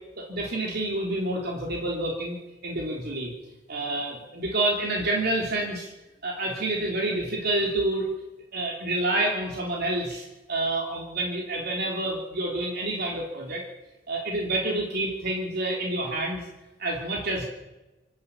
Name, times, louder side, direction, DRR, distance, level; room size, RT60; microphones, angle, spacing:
voice 1, 0.2-3.3 3.7-5.9 6.2-8.1 8.5-13.6 14.1-16.5 16.8-17.4, right 2 dB, 55° right, -1 dB, 3.5 m, -28 dB
26.5 x 11.5 x 8.7 m, 1.1 s
head